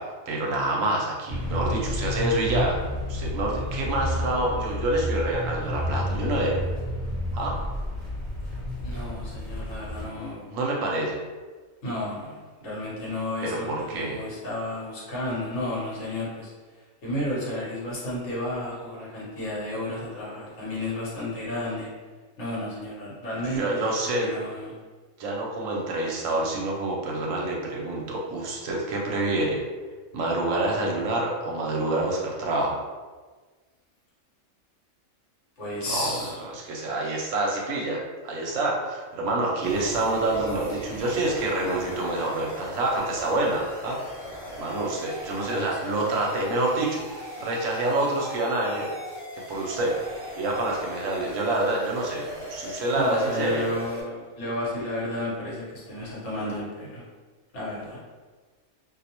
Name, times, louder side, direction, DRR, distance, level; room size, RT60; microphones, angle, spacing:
voice 1, 0.0-2.8 3.1-6.6 7.3-7.5 10.0-10.1 10.5-11.2 13.4-14.2 23.4-24.3 25.2-29.6 30.1-32.8 35.9-44.0 44.6-48.9 49.3-49.9 50.4-53.7, right 2 dB, 70° right, -1 dB, 0.9 m, -27 dB
sound 1, 1.3-10.1, left 1 dB, 45° right, 0.6 m, -30 dB
voice 2, 8.8-10.6 11.8-16.5 17.0-21.9 22.4-24.8 35.6-36.3 45.4-45.9 52.7-57.0 57.5-58.0, left 1 dB, 60° left, -7 dB, 1.1 m, -32 dB
sound 2, 39.6-54.0, equal, 5° right, 0.9 m, -39 dB
2.5 x 2.0 x 2.8 m, 1.4 s
omnidirectional pair, 1.5 m